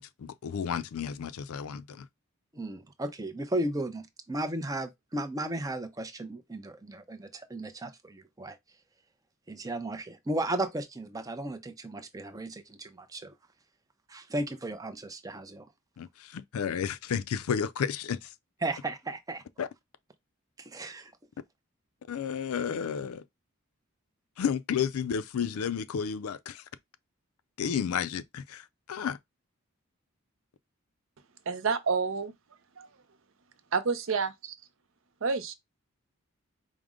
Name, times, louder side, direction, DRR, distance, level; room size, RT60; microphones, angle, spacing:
voice 1, 0.0-2.1 16.0-18.3 19.6-19.7 22.1-23.2 24.4-26.6 27.6-29.2, left 7 dB, 80° left, 0.4 m, -32 dB
voice 2, 2.5-8.6 9.5-13.3 14.1-15.7 18.6-19.4 20.6-21.1, right 1 dB, 15° right, 0.5 m, -35 dB
voice 3, 31.5-32.3 32.8-32.9 33.7-34.5 35.2-35.5, right 5 dB, 65° right, 0.5 m, -29 dB
4.9 x 2.1 x 3.5 m
head